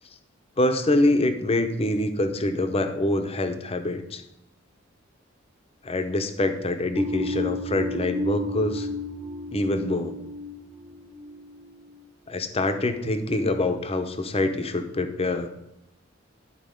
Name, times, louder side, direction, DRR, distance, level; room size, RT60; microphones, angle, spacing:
voice 1, 0.6-4.2 5.8-8.9 9.5-10.2 12.3-15.5, left 2 dB, 30° left, 8 dB, 0.7 m, -25 dB
sound 1, 6.9-12.0, left 1 dB, 15° right, 0.6 m, -32 dB
11.0 x 4.0 x 5.2 m, 0.85 s
head